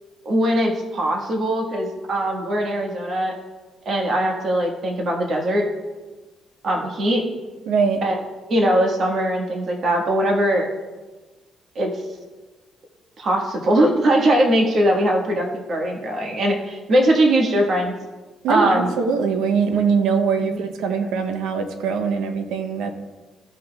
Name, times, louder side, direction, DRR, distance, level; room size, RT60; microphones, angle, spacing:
voice 1, 0.2-3.3 3.8-5.7 6.6-7.2 8.0-8.2 8.5-10.7 11.7-12.0 13.2-17.9 18.5-18.9 20.4-20.6, right 1 dB, 55° right, 1 dB, 1.4 m, -20 dB
voice 2, 7.7-8.0 18.4-22.9, right 5 dB, 90° right, 6 dB, 0.7 m, -22 dB
13.5 x 5.8 x 2.3 m, 1.2 s
cardioid pair, 90°, 0 cm